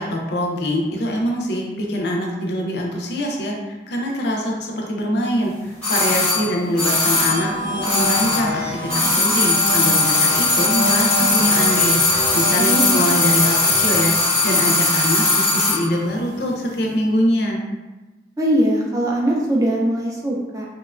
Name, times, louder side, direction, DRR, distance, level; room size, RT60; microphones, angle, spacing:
voice 1, 0.0-17.6, equal, 60° left, -1 dB, 0.4 m, -24 dB
sound 1, 5.8-8.6 8.8-15.9 16.1-16.2, left 2 dB, 5° left, 0.7 m, -19 dB
sound 2, 6.9-14.2, left 1 dB, 65° right, 0.9 m, -28 dB
voice 2, 12.6-13.0 18.4-20.7, equal, 15° right, -3 dB, 0.3 m, -21 dB
2.9 x 2.1 x 2.4 m, 1.1 s
head